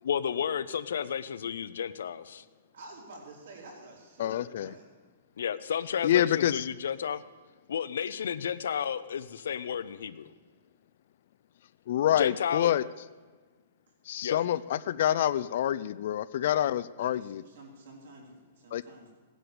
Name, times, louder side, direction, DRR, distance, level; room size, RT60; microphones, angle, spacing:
voice 1, 0.0-2.4 5.4-7.2 7.7-10.3 12.2-12.7 14.2-14.4, left 8 dB, 85° left, 13 dB, 0.8 m, -32 dB
voice 2, 2.7-4.8 16.9-19.1, right 2 dB, 60° right, -1 dB, 4.4 m, -49 dB
voice 3, 4.2-4.7 6.0-6.6 11.9-12.8 14.1-17.4 18.7-18.8, left 11 dB, 45° left, 16 dB, 0.4 m, -27 dB
17.0 x 10.0 x 7.0 m, 1.5 s
hypercardioid pair, 180°, 0 cm